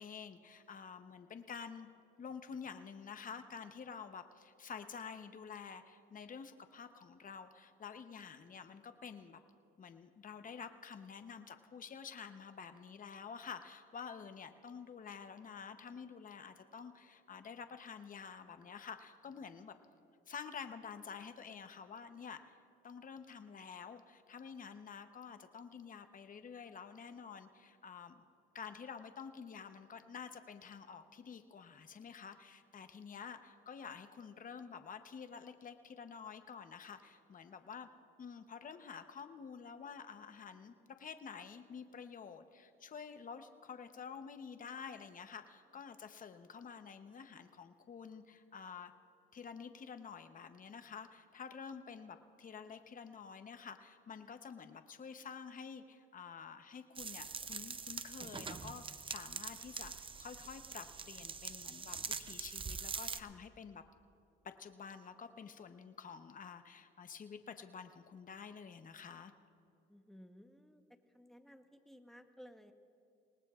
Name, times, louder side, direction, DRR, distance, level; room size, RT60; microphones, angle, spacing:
voice 1, 0.0-1.9 2.2-9.4 9.8-19.7 20.3-22.5 22.8-28.3 28.5-37.9 38.2-48.9 49.3-63.8 64.4-69.3, left 6 dB, 45° left, 8 dB, 0.9 m, -49 dB
sound 1, 56.9-63.2, right 5 dB, 25° right, 0.5 m, -44 dB
voice 2, 69.9-70.8 71.1-72.7, equal, ahead, 6 dB, 1.0 m, -57 dB
26.5 x 19.0 x 2.4 m, 2.6 s
cardioid pair, 90°, 20 cm